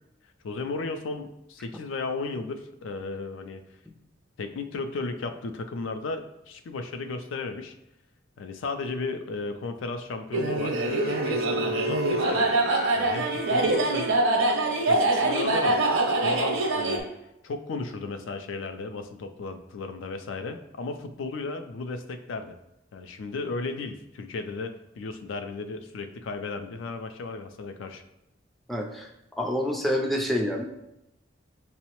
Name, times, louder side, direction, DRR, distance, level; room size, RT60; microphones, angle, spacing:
voice 1, 0.4-3.6 4.4-7.8 8.4-12.5 12.9-14.1 14.9-15.8 16.2-17.1 17.4-22.6 22.9-28.0, left 3 dB, 70° left, 7 dB, 0.4 m, -34 dB
sound 1, 10.3-17.0, right 2 dB, 75° right, 0.6 m, -24 dB
voice 2, 28.7-29.1 29.4-30.6, left 1 dB, ahead, 1 dB, 0.4 m, -27 dB
5.3 x 2.0 x 2.9 m, 0.86 s
head